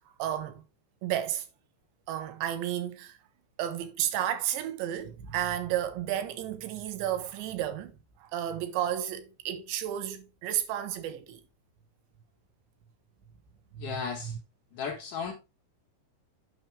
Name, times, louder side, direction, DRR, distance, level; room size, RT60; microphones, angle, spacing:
voice 1, 0.2-0.6 1.0-1.5 2.1-3.2 3.6-11.4 13.7-14.0, right 11 dB, 90° right, 3.2 m, -32 dB
voice 2, 13.8-14.4 14.7-15.3, left 6 dB, 65° left, 2.1 m, -35 dB
9.2 x 5.8 x 3.2 m
omnidirectional pair, 5.1 m